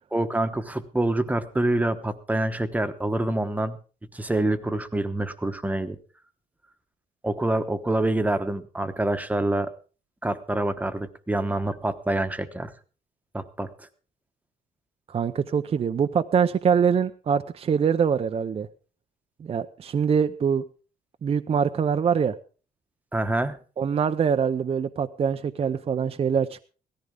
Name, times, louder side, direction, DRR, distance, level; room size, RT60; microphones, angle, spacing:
voice 1, 0.1-3.8 4.1-6.0 7.2-9.7 10.2-12.7 13.3-13.9 23.1-23.6, right 1 dB, 10° right, 8 dB, 1.1 m, -26 dB
voice 2, 15.1-18.7 19.4-20.6 21.2-22.4 23.8-26.6, right 7 dB, 35° right, 7 dB, 0.6 m, -24 dB
17.5 x 14.0 x 3.7 m, 0.37 s
cardioid pair, 140°, 16 cm